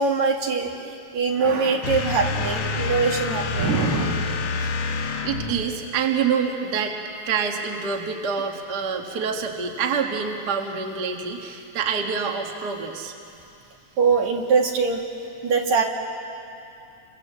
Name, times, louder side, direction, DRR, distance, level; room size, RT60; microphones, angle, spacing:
voice 1, 0.0-4.4 14.0-15.0 15.4-15.8, right 4 dB, 70° right, 1 dB, 3.2 m, -22 dB
sound 1, 1.8-5.8, left 4 dB, 60° left, 2.3 m, -27 dB
voice 2, 5.2-7.0 7.2-13.1, right 6 dB, 40° right, 2 dB, 1.9 m, -26 dB
29.5 x 25.0 x 7.5 m, 2.7 s
omnidirectional pair, 3.4 m